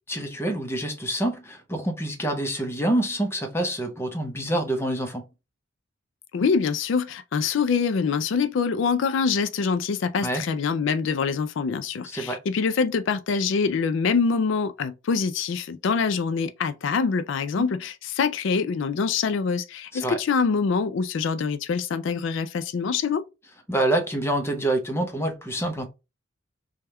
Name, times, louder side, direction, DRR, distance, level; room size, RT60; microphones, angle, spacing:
voice 1, 0.1-5.3 10.2-10.4 12.0-12.4 17.6-17.7 19.9-20.2 23.7-25.9, right 1 dB, 10° left, 0.7 m, -26 dB
voice 2, 6.3-23.2, left 5 dB, 65° left, 0.4 m, -25 dB
3.4 x 2.3 x 4.1 m
head